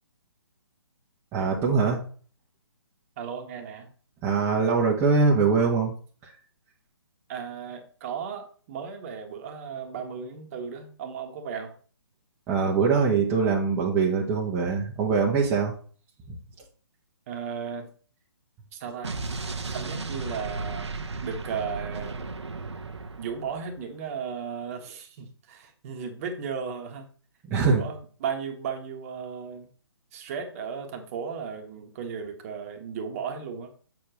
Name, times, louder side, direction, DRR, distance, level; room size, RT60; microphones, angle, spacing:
voice 1, 1.3-2.0 4.2-5.9 6.2-6.3 12.5-15.7 16.3-16.4 27.5-27.8, right 4 dB, 15° right, -3 dB, 1.1 m, -23 dB
voice 2, 3.2-3.9 7.3-11.7 17.3-17.9 18.7-19.2 19.7-20.9 21.2-22.2 23.2-27.1 27.6-29.7 30.1-33.7, right 6 dB, 30° right, 5 dB, 1.4 m, -35 dB
Explosion, 19.0-23.8, right 3 dB, 75° right, 1.0 m, -35 dB
8.3 x 6.8 x 3.1 m, 0.42 s
figure-of-eight pair, 140°, 15 cm